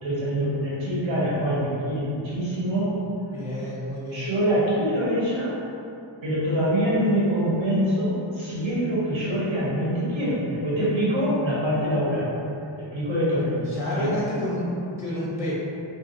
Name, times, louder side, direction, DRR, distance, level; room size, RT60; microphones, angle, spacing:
voice 1, 0.0-3.0 4.1-5.6 6.2-12.3 12.8-13.6 13.9-14.1, equal, 70° right, -8 dB, 1.2 m, -24 dB
voice 2, 3.3-4.3 13.2-14.7 15.0-15.5, left 1 dB, 5° right, -8 dB, 0.6 m, -30 dB
2.7 x 2.4 x 3.8 m, 2.6 s
wide cardioid pair, 125°, 48 cm